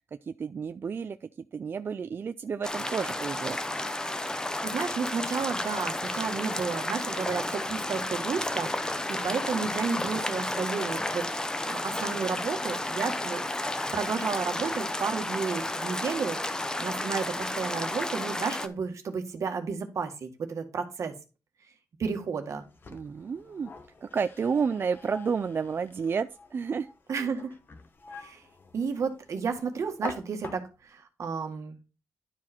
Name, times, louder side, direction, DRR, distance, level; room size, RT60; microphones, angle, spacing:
voice 1, 0.3-3.6 22.9-23.7 24.0-26.9 27.2-27.3, right 6 dB, 40° right, 0.3 m, -31 dB
sound 1, 2.6-18.7, left 1 dB, 15° left, 0.7 m, -32 dB
voice 2, 4.6-11.3 11.7-13.4 13.9-16.4 16.8-21.1 22.0-22.6 27.1-27.5 28.2-28.4 28.7-31.8, right 5 dB, 65° right, 1.6 m, -32 dB
sound 2, 22.5-31.0, left 3 dB, 40° left, 1.0 m, -46 dB
11.5 x 4.8 x 4.3 m
wide cardioid pair, 160°, 6 cm